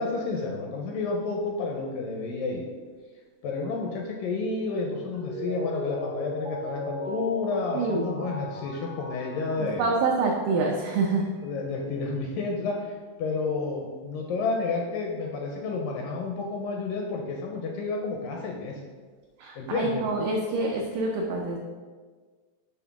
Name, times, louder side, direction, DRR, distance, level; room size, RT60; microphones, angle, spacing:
voice 1, 0.0-2.6 3.4-9.9 11.4-18.8 19.6-20.0, left 3 dB, 80° left, 0 dB, 2.0 m, -30 dB
Mallet percussion, 5.1-10.7 11.0-11.1, left 1 dB, 55° right, 0.7 m, -37 dB
voice 2, 7.7-8.1 9.8-11.2 19.4-21.6, right 3 dB, 85° right, 0 dB, 1.8 m, -26 dB
7.3 x 3.6 x 5.8 m, 1.5 s
omnidirectional pair, 4.6 m